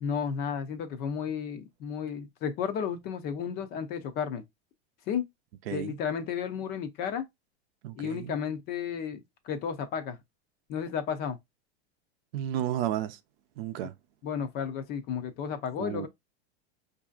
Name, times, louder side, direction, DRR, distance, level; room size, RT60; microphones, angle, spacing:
voice 1, 0.0-4.4 5.1-5.2 5.7-7.2 7.9-10.2 10.7-11.4 14.2-16.1, left 7 dB, 30° left, 0.5 m, -33 dB
voice 2, 7.8-8.3 12.3-13.2 13.6-13.9 15.8-16.1, right 11 dB, 60° right, 0.6 m, -32 dB
4.7 x 2.6 x 2.4 m
supercardioid pair, 150°, 33 cm